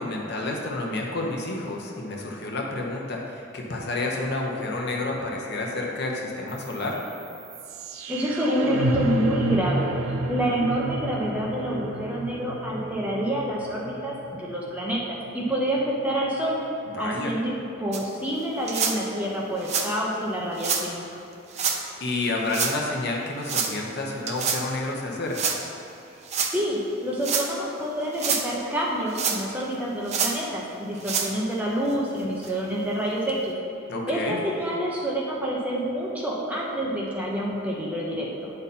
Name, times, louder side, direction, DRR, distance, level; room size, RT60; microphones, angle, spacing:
voice 1, 0.0-7.0 17.0-17.4 21.5-25.6 33.9-34.4, left 2 dB, 50° left, -1 dB, 0.9 m, -30 dB
sound 1, 6.5-16.5, right 1 dB, 90° right, 0.6 m, -32 dB
voice 2, 8.1-16.6 17.0-21.0 26.5-33.5 34.1-38.5, right 1 dB, 5° right, -4 dB, 0.9 m, -27 dB
sound 2, 17.9-18.0 18.7-19.0 19.6-19.9 20.6-20.8 21.5-21.8 22.5-22.8 23.5-23.7 24.3-24.6 25.3-25.6 26.3-26.5 27.1-27.5 28.0-28.5 29.1-29.6 30.1-30.4 31.0-31.3 31.9-32.0 32.4-32.5 33.3-33.4, right 6 dB, 30° right, 0.5 m, -26 dB
8.8 x 5.5 x 4.2 m, 2.9 s
head